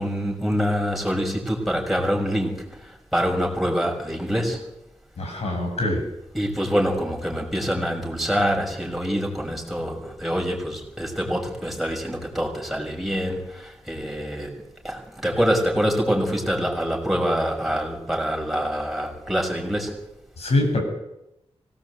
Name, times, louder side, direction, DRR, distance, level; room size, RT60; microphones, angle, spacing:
voice 1, 0.0-2.6 3.1-4.6 6.3-13.4 13.9-14.5 14.8-19.9, equal, ahead, 0 dB, 6.1 m, -25 dB
voice 2, 5.2-6.0 20.4-20.8, left 2 dB, 75° left, 3 dB, 8.0 m, -23 dB
24.5 x 18.0 x 8.2 m, 0.88 s
wide cardioid pair, 150°, 11 cm